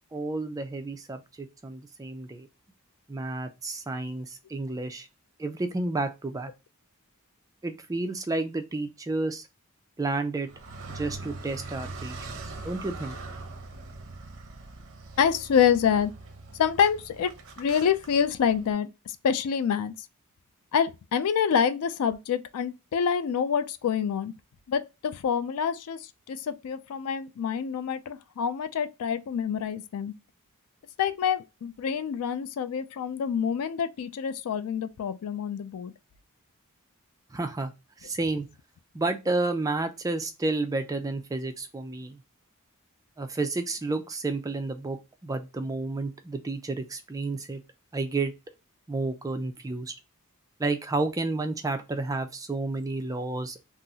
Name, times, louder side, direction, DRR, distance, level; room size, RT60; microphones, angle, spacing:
voice 1, 0.1-2.5 3.1-5.1 5.4-6.5 7.6-9.4 10.0-10.5 10.9-13.2 37.3-37.7 38.0-38.5 38.9-42.2 43.2-45.0 45.2-47.6 47.9-48.3 48.9-49.9 50.6-53.6, right 2 dB, 15° right, 0.3 m, -31 dB
Car, 10.5-18.7, right 3 dB, 60° right, 0.7 m, -42 dB
voice 2, 15.2-16.1 16.6-19.9 20.7-24.3 24.7-30.1 31.0-35.9, left 7 dB, 75° left, 0.3 m, -27 dB
3.7 x 2.0 x 2.7 m
head